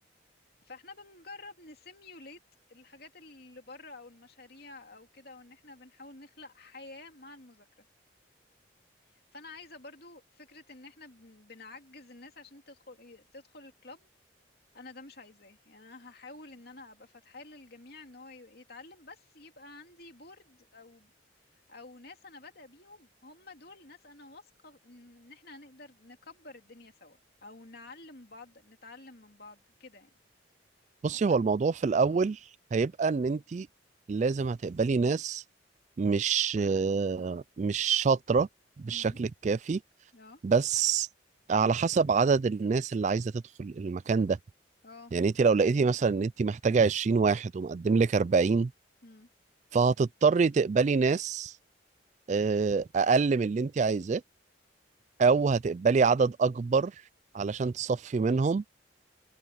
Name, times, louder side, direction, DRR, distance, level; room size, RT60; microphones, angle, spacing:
voice 1, 0.6-2.4 2.7-7.7 9.1-14.1 14.7-21.1 21.7-30.1 31.3-31.4 38.9-39.2 40.1-40.4 44.8-45.1 49.0-49.3, left 3 dB, 55° left, 2.9 m, -50 dB
voice 2, 31.0-32.4 32.7-33.7 34.1-35.4 36.0-38.5 38.8-39.8 40.4-41.1 41.5-44.4 45.1-48.7 49.7-51.5 52.3-54.2 55.2-56.9 57.3-58.6, right 5 dB, 40° right, 0.3 m, -26 dB
open air
head